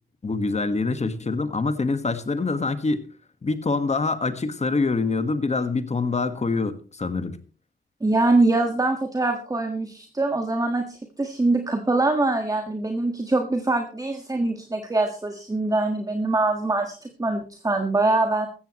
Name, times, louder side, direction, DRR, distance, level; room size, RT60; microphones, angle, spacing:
voice 1, 0.2-3.1 3.4-7.4, left 3 dB, 30° left, 1.5 m, -25 dB
voice 2, 8.0-18.5, right 2 dB, 15° right, 1.6 m, -23 dB
15.0 x 14.5 x 3.0 m
cardioid pair, 105°, 21 cm